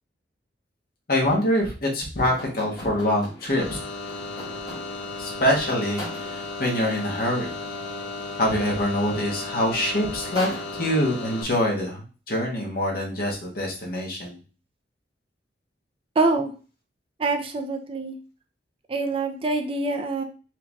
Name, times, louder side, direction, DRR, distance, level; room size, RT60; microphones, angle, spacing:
voice 1, 1.1-3.8 5.2-7.5 8.4-14.4, left 1 dB, 55° left, -1 dB, 1.4 m, -25 dB
sound 1, 2.2-5.2 6.0-6.6 9.3-9.4 9.7-11.2, equal, 25° left, 1.5 m, -40 dB
sound 2, 3.6-11.4, left 3 dB, 70° left, 1.0 m, -35 dB
voice 2, 16.2-16.5 17.2-18.2 18.9-20.2, right 3 dB, 30° right, 5 dB, 0.5 m, -25 dB
4.6 x 2.9 x 3.5 m, 0.36 s
head